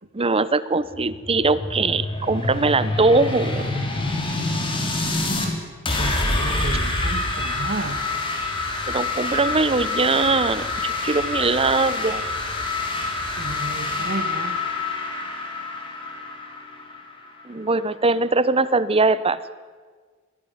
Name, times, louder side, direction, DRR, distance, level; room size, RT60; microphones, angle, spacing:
voice 1, 0.1-3.8 8.9-12.2 17.4-19.4, right 3 dB, 25° right, 15 dB, 0.8 m, -21 dB
sound 1, 0.8-5.5 5.8-17.4, left 2 dB, 25° left, 3.7 m, -27 dB
voice 2, 6.0-8.0 13.4-14.6, right 2 dB, 45° right, 8 dB, 2.3 m, -32 dB
22.5 x 16.5 x 9.6 m, 1.5 s
head